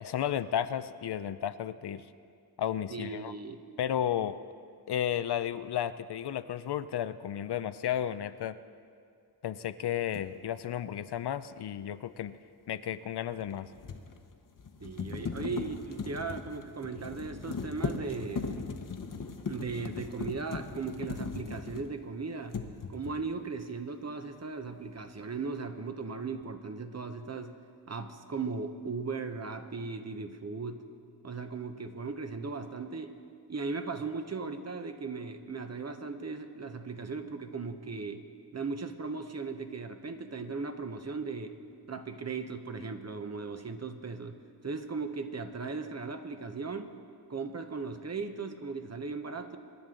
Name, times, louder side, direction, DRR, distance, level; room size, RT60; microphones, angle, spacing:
voice 1, 0.0-2.0 2.6-3.3 3.8-4.4 4.9-8.6 9.4-12.3 12.7-13.7, left 10 dB, 75° left, 13 dB, 0.6 m, -33 dB
voice 2, 2.9-3.6 14.8-18.5 19.5-22.6 22.9-27.6 27.9-30.8 31.2-33.2 33.5-38.3 38.5-41.6 41.9-46.9 47.3-49.6, right 4 dB, 40° right, 7 dB, 1.0 m, -37 dB
sound 1, 10.1-10.3 13.4-22.1 22.5-23.3, left 4 dB, 50° left, 1.0 m, -38 dB
24.0 x 11.0 x 3.8 m, 2.3 s
wide cardioid pair, 85°, 40 cm